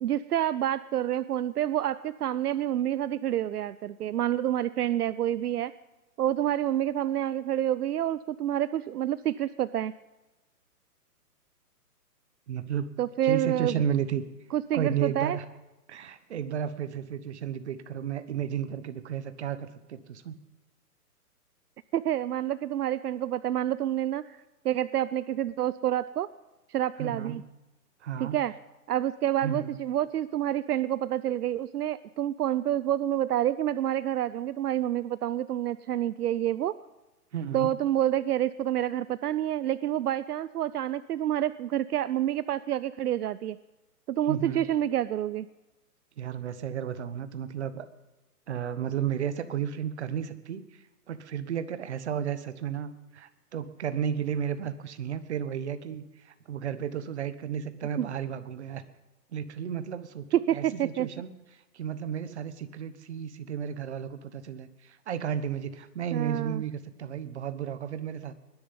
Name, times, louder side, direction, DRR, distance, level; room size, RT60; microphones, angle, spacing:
voice 1, 0.0-5.7 6.2-9.9 13.0-13.8 14.5-15.4 21.9-24.4 24.6-26.3 26.7-27.4 28.2-28.5 28.9-36.8 37.5-43.6 44.1-45.5 58.0-58.1 60.3-61.1 66.1-66.6, right 11 dB, 75° right, 16 dB, 0.6 m, -28 dB
voice 2, 12.5-12.9 13.2-14.2 14.7-15.4 15.9-20.4 27.0-27.4 28.0-28.4 29.4-29.8 37.3-37.7 44.3-44.6 46.2-47.9 48.5-50.6 51.1-58.8 59.3-68.3, right 8 dB, 45° right, 12 dB, 1.2 m, -33 dB
20.5 x 10.5 x 5.5 m, 1.1 s
hypercardioid pair, 165°, 47 cm